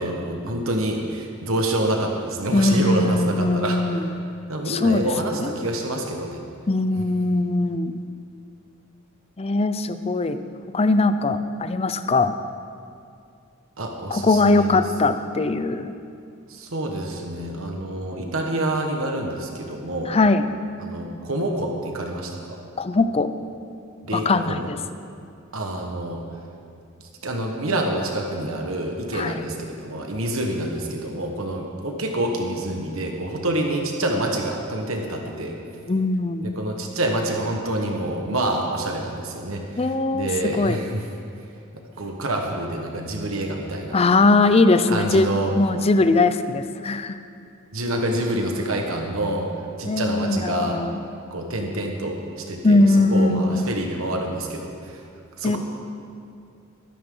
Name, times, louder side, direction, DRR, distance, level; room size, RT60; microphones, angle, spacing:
voice 1, 0.0-3.8 4.5-6.4 13.8-14.8 16.5-20.2 20.8-22.6 24.0-24.7 25.5-26.2 27.2-35.5 36.4-41.0 42.0-44.0 44.9-45.5 47.7-49.5 49.8-50.8 51.3-52.8 53.1-55.0 55.4-55.6, right 1 dB, 70° right, 2 dB, 1.4 m, -27 dB
voice 2, 2.5-4.1 4.7-5.1 5.4-5.5 6.7-8.0 9.4-10.4 10.7-12.3 14.1-15.9 20.1-20.5 22.8-23.3 24.1-24.8 29.1-29.4 35.9-36.5 39.8-40.3 40.6-40.8 43.9-45.3 45.6-47.2 49.9-51.0 52.6-53.7 55.4-55.6, left 2 dB, 30° left, 10 dB, 0.5 m, -20 dB
22.0 x 9.8 x 3.9 m, 2.4 s
head